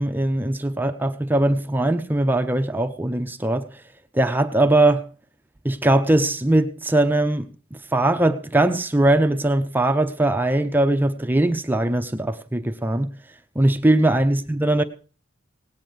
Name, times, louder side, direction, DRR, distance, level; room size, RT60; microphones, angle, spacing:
voice 1, 0.0-3.7 4.1-5.1 5.6-13.1 13.6-14.8, right 1 dB, 10° right, 7 dB, 0.6 m, -20 dB
18.0 x 9.3 x 5.0 m, 0.39 s
head